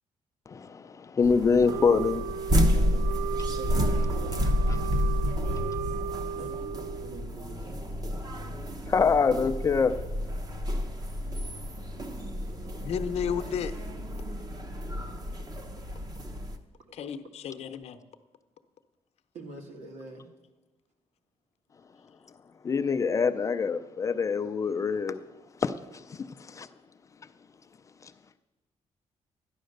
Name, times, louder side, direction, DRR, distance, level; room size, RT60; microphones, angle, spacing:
voice 1, 0.5-2.3 8.9-10.0 22.6-25.2 25.6-26.7, left 5 dB, 25° left, 0.4 m, -25 dB
sound 1, 1.2-16.6, equal, 30° right, 0.9 m, -30 dB
Wind instrument woodwind instrument, 1.6-7.3, right 9 dB, 85° right, 0.4 m, -35 dB
voice 2, 2.7-4.6 5.2-5.8 6.3-6.5 7.0-7.9 12.9-13.3 16.9-17.6 19.3-20.2, right 3 dB, 70° right, 2.3 m, -46 dB
voice 3, 12.8-13.7 16.9-18.0, left 8 dB, 60° left, 0.8 m, -32 dB
13.0 x 10.5 x 6.5 m
cardioid pair, 180°, 12 cm